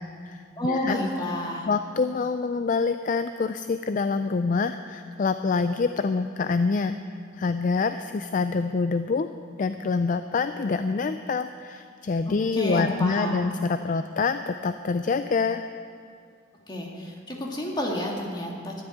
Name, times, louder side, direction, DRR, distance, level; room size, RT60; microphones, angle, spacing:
voice 1, 0.0-1.0 1.7-7.0 7.3-9.3 9.6-15.7, left 4 dB, 40° left, 10 dB, 0.4 m, -26 dB
voice 2, 0.6-1.7 12.5-13.4 16.7-18.8, left 1 dB, 20° left, -1 dB, 2.1 m, -29 dB
13.0 x 7.9 x 10.0 m, 2.3 s
head